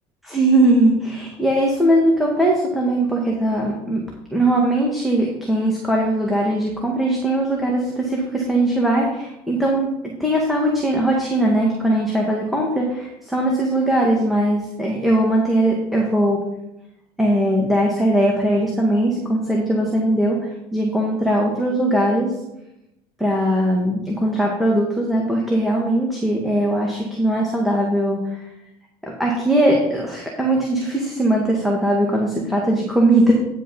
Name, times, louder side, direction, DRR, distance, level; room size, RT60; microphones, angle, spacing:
voice 1, 0.2-4.0 4.3-9.9 10.2-16.4 17.2-20.4 20.7-22.3 23.2-28.4 29.0-33.3, right 1 dB, ahead, -2 dB, 1.9 m, -20 dB
10.0 x 5.3 x 5.5 m, 0.86 s
supercardioid pair, 100°, 14 cm